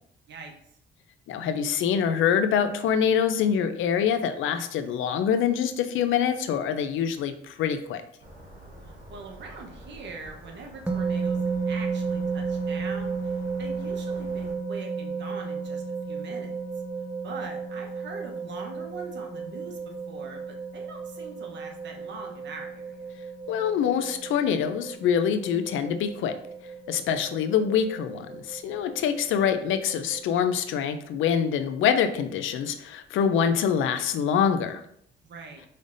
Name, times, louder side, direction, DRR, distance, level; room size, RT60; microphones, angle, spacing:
voice 1, 1.3-8.0 23.5-26.3 26.9-34.8, left 8 dB, 80° left, 9 dB, 0.5 m, -25 dB
sound 1, 8.2-14.5, right 1 dB, 40° right, 1.8 m, -48 dB
voice 2, 8.8-16.6 17.2-23.1 35.2-35.6, right 4 dB, 65° right, 2 dB, 1.0 m, -42 dB
sound 2, 10.9-30.2, right 5 dB, 10° right, 0.7 m, -33 dB
5.3 x 3.3 x 2.6 m, 0.69 s
cardioid pair, 90°, 20 cm